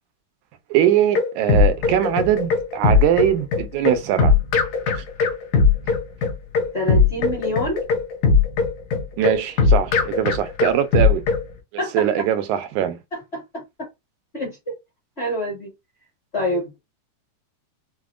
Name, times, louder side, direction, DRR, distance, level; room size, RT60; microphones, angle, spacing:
voice 1, 0.7-4.4 5.0-5.1 9.2-11.2 11.9-13.0, right 11 dB, 85° right, 2.0 m, -21 dB
sound 1, 0.8-11.4, left 5 dB, 75° left, 2.1 m, -19 dB
voice 2, 6.7-7.8 11.8-12.1 13.1-13.6 14.3-14.6 15.2-15.7 16.3-16.8, equal, 35° left, 1.0 m, -26 dB
5.8 x 2.1 x 2.4 m
omnidirectional pair, 3.4 m